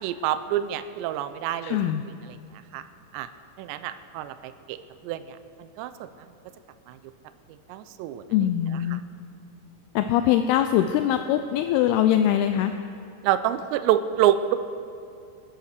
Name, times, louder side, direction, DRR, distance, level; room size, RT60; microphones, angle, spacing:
voice 1, 0.0-1.8 2.3-2.4 2.7-2.8 3.1-3.3 3.6-4.8 5.0-6.1 6.9-7.0 7.7-8.2 8.9-9.0 13.2-14.6, right 11 dB, 85° right, 11 dB, 2.8 m, -27 dB
voice 2, 1.6-2.0 8.3-9.0 10.0-12.7, left 11 dB, 85° left, 8 dB, 2.3 m, -22 dB
21.5 x 10.5 x 6.6 m, 2.5 s
omnidirectional pair, 5.1 m